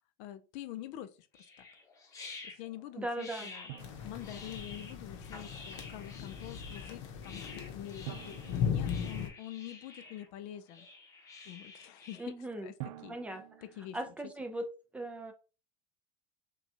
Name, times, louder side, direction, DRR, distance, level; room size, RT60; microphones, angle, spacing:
voice 1, 0.2-1.7 2.4-3.7 4.0-10.9 11.5-13.2 13.6-14.1, left 12 dB, 50° left, 0.5 m, -46 dB
sound 1, 1.3-12.3, left 3 dB, 20° left, 0.8 m, -50 dB
voice 2, 3.0-3.5 12.2-12.7 13.1-13.4 13.9-14.7 14.9-15.3, right 1 dB, 10° right, 0.4 m, -38 dB
Drum, 3.7-5.2 8.1-9.8 12.8-14.4, right 15 dB, 75° right, 0.5 m, -49 dB
sound 2, 3.8-9.3, left 7 dB, 80° left, 0.8 m, -38 dB
5.9 x 2.3 x 2.7 m
cardioid pair, 165°, 15 cm